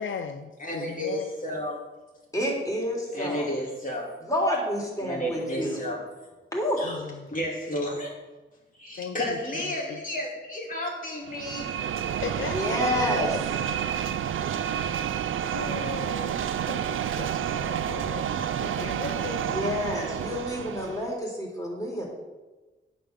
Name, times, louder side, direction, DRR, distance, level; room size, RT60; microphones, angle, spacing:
voice 1, 0.0-1.3 6.8-7.2 9.0-10.0 12.2-13.4 14.8-16.4 16.6-19.8, left 7 dB, 80° left, 0.5 m, -38 dB
voice 2, 0.6-1.8 3.1-4.2 5.0-6.0 6.8-7.0 7.3-8.1 8.8-11.7, equal, 45° left, 3.0 m, -32 dB
voice 3, 2.3-3.5 4.2-5.8 6.5-6.8 12.5-13.3 19.4-22.0, left 1 dB, 15° left, 3.3 m, -29 dB
sound 1, 11.3-21.1, right 9 dB, 90° right, 0.4 m, -29 dB
9.0 x 5.2 x 6.8 m
cardioid pair, 70°, 20 cm